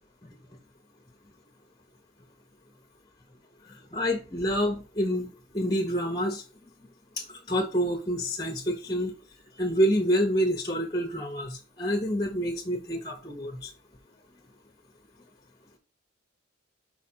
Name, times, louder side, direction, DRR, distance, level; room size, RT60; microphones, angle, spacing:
voice 1, 3.6-6.4 7.2-9.1 9.6-13.7, equal, 20° left, 0.7 m, -28 dB
4.8 x 4.6 x 4.3 m
head